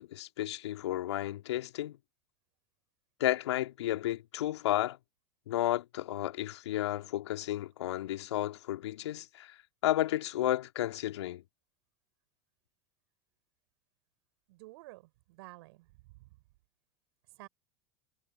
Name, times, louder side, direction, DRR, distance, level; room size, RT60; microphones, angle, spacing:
voice 1, 0.0-2.0 3.2-5.0 5.5-11.4, left 14 dB, 70° left, 2.3 m, -32 dB
voice 2, 14.5-16.4 17.3-17.5, right 21 dB, 65° right, 5.3 m, -52 dB
hypercardioid pair, 85°, 15 cm